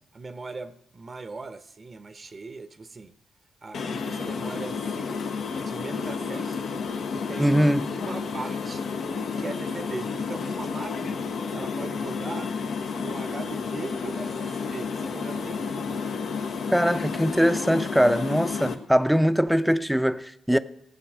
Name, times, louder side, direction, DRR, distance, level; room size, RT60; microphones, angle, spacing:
voice 1, 0.1-3.1 3.6-5.1 5.6-6.7 7.1-7.6 7.9-8.9 9.4-12.5 13.0-15.7 20.5-20.6, right 3 dB, 40° right, 0.8 m, -39 dB
sound 1, 3.7-18.7, left 5 dB, 70° left, 1.1 m, -31 dB
voice 2, 7.4-7.9 16.7-20.6, equal, ahead, 0.6 m, -22 dB
15.5 x 7.7 x 6.2 m
supercardioid pair, 55°, 0 cm